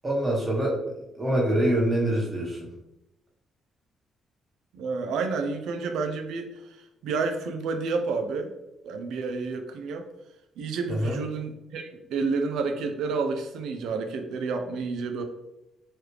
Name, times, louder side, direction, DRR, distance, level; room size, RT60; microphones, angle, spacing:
voice 1, 0.0-0.8 1.1-2.7 11.0-11.1, right 1 dB, 20° right, -3 dB, 1.0 m, -25 dB
voice 2, 4.7-8.5 8.8-10.1 10.6-15.2, right 4 dB, 80° right, 5 dB, 0.4 m, -30 dB
3.1 x 2.4 x 3.0 m, 0.93 s
cardioid pair, 90°, 0 cm